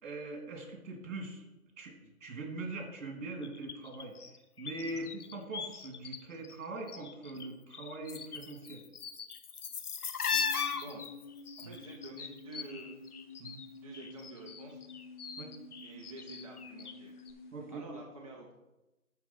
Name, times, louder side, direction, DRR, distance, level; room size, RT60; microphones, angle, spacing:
voice 1, 0.0-1.4 1.8-4.1 4.6-5.1 5.3-8.8 11.6-11.7 13.4-13.6 15.4-15.5 17.5-17.8, right 2 dB, 60° right, 1 dB, 3.1 m, -42 dB
sound 1, 3.4-6.2 6.4-7.5 7.7-13.7 13.9-17.0 17.3-17.4, left 6 dB, 85° left, 1.1 m, -39 dB
voice 2, 4.8-5.1 10.1-10.4 10.7-11.0 11.6-13.0 13.7-14.8 15.8-17.1 17.7-18.5, right 2 dB, 25° right, -2 dB, 0.6 m, -49 dB
sound 2, 10.3-17.7, left 3 dB, 35° left, 1.0 m, -50 dB
11.5 x 3.9 x 5.7 m, 1.0 s
hypercardioid pair, 160°, 44 cm